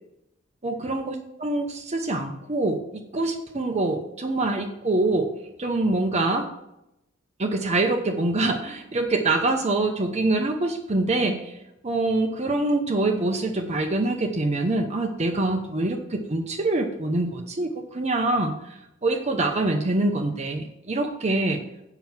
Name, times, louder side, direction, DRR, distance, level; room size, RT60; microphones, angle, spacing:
voice 1, 0.6-2.8 3.1-5.3 5.6-6.5 7.4-11.5 11.8-18.5 19.0-21.6, right 2 dB, 35° right, 3 dB, 0.8 m, -25 dB
7.8 x 5.9 x 7.2 m, 0.84 s
head